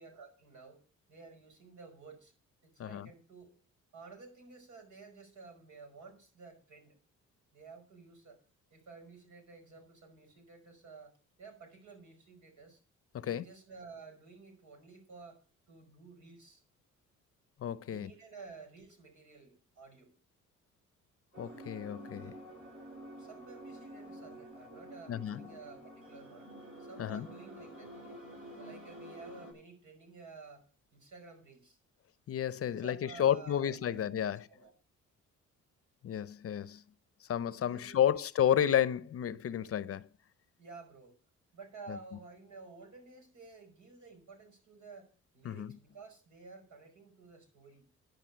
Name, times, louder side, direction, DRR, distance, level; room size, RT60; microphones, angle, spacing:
voice 1, 0.0-2.3 2.6-3.6 3.9-7.0 7.5-8.4 8.7-11.1 11.4-12.8 13.2-16.6 17.8-20.1 23.1-26.5 26.8-28.2 28.6-31.8 32.6-34.7 37.6-38.1 39.6-39.7 40.6-41.2 41.5-45.1 45.3-47.8, right 4 dB, 80° right, 5.5 m, -53 dB
voice 2, 17.6-18.1 21.4-22.3 25.1-25.5 27.0-27.3 32.3-34.5 36.0-36.8 37.2-40.1 41.9-42.0 45.4-45.7, left 10 dB, 50° left, 0.7 m, -31 dB
sound 1, 21.3-29.5, right 1 dB, 45° right, 7.2 m, -49 dB
11.5 x 5.3 x 8.6 m
cardioid pair, 90°, 30 cm